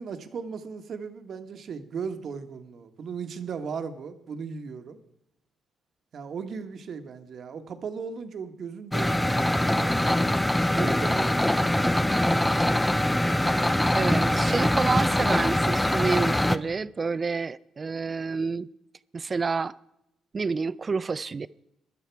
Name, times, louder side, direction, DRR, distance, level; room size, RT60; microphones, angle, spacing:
voice 1, 0.0-5.0 6.1-10.3 10.7-12.2, right 6 dB, 60° right, 1.4 m, -37 dB
sound 1, 8.9-16.6, left 1 dB, 5° left, 0.7 m, -23 dB
voice 2, 13.9-18.7 19.1-19.7 20.3-21.5, right 4 dB, 35° right, 0.5 m, -29 dB
16.0 x 11.5 x 4.7 m
cardioid pair, 90°, 0 cm